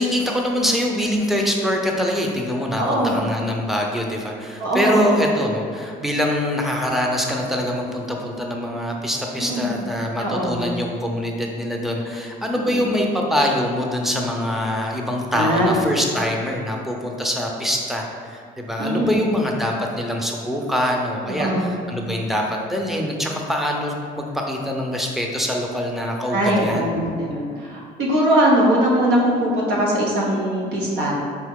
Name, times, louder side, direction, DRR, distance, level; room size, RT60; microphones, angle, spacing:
voice 1, 0.0-26.9, equal, ahead, 0 dB, 0.5 m, -24 dB
voice 2, 2.8-3.2 4.6-5.2 9.4-9.8 10.2-10.7 12.6-12.9 15.3-15.8 18.8-19.3 21.3-21.8 26.3-31.1, equal, 85° right, -3 dB, 1.0 m, -21 dB
4.5 x 2.8 x 3.6 m, 2.2 s
cardioid pair, 110°, 17 cm